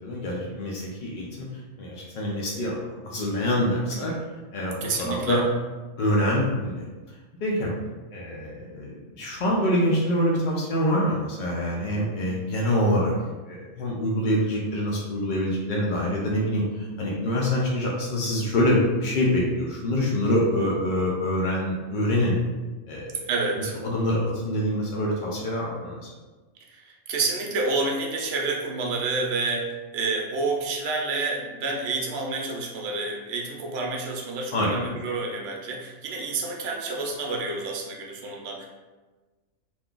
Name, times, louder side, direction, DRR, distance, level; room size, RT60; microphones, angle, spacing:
voice 1, 0.0-1.5 1.8-4.1 4.5-5.4 6.0-6.9 7.4-7.7 8.1-13.1 13.5-22.4 22.9-23.3 23.8-26.1 34.5-34.7, left 1 dB, 75° left, -4 dB, 0.4 m, -25 dB
voice 2, 4.8-5.4 23.3-23.7 26.7-38.7, right 3 dB, 60° right, 0 dB, 0.7 m, -29 dB
2.6 x 2.3 x 3.7 m, 1.3 s
omnidirectional pair, 1.4 m